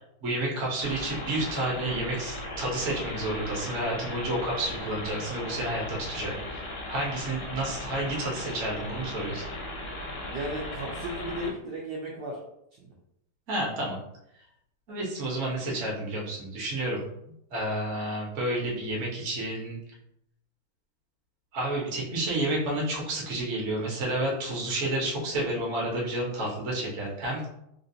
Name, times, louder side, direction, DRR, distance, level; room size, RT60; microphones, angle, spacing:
voice 1, 0.2-9.4 13.5-14.0 14.9-17.0 17.5-19.8 21.5-27.5, right 1 dB, 50° right, -3 dB, 0.9 m, -30 dB
sound 1, 0.8-11.5, left 1 dB, 70° left, 1.0 m, -37 dB
voice 2, 10.3-12.4 12.8-12.9, right 1 dB, 75° right, -3 dB, 1.0 m, -35 dB
3.4 x 2.5 x 2.7 m, 0.78 s
omnidirectional pair, 2.4 m